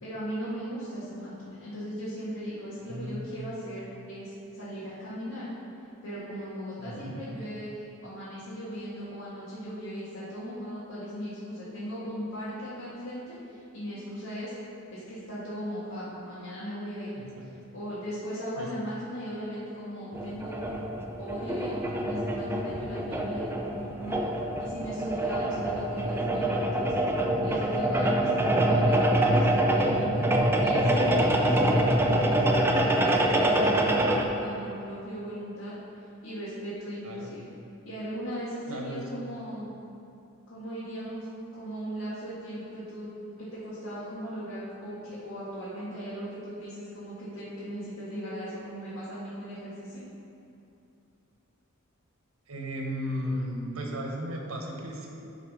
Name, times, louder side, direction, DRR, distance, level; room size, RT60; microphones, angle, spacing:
voice 1, 0.0-5.5 6.0-14.5 14.9-17.1 17.7-20.8 21.2-24.2 24.6-26.9 27.4-30.3 30.6-35.7 36.2-37.5 37.9-39.7 40.5-43.1 43.4-50.0, equal, 85° left, -11 dB, 2.1 m, -38 dB
voice 2, 6.8-7.1 17.2-17.5 18.6-18.7 37.0-37.3 38.7-39.0 52.5-55.1, equal, 90° right, 1 dB, 1.3 m, -35 dB
sound 1, 20.1-34.2, right 1 dB, 10° right, 0.5 m, -25 dB
11.0 x 4.2 x 5.5 m, 2.7 s
head